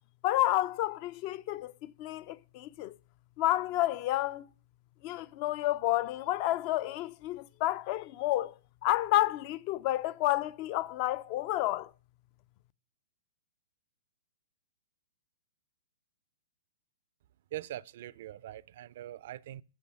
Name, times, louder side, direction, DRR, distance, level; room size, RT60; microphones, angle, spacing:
voice 1, 0.2-3.0 3.4-4.5 5.0-8.6 8.8-11.9, left 15 dB, 40° left, 0.4 m, -30 dB
voice 2, 17.5-19.6, right 13 dB, 55° right, 0.4 m, -42 dB
8.4 x 5.5 x 7.5 m
hypercardioid pair, 125°, 0 cm